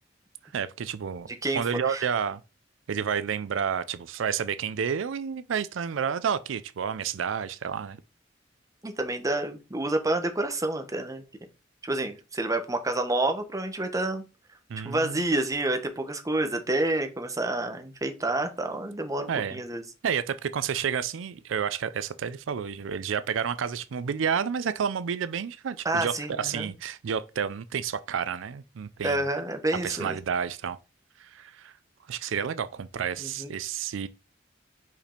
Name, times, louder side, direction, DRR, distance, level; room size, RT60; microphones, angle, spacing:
voice 1, 0.5-1.3 1.6-2.4 2.9-8.0 14.7-15.2 19.3-19.6 20.0-29.2 29.8-30.8 31.2-31.7 32.1-34.1, right 7 dB, 85° right, 0.4 m, -30 dB
voice 2, 1.3-2.1 8.8-11.2 11.8-14.2 14.8-19.8 25.8-26.7 29.0-30.2 33.2-33.5, right 2 dB, 20° right, 0.9 m, -29 dB
5.2 x 4.7 x 4.4 m
head